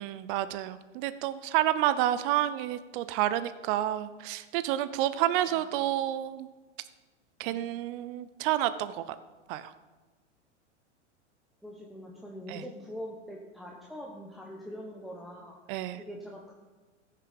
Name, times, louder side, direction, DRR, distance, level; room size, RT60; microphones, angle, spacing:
voice 1, 0.0-6.5 7.4-9.2 9.5-9.7 12.5-12.6 15.7-16.0, right 13 dB, 45° right, 13 dB, 0.6 m, -29 dB
voice 2, 11.6-16.5, equal, ahead, -2 dB, 1.2 m, -43 dB
14.5 x 6.7 x 5.2 m, 1.3 s
hypercardioid pair, 115°, 36 cm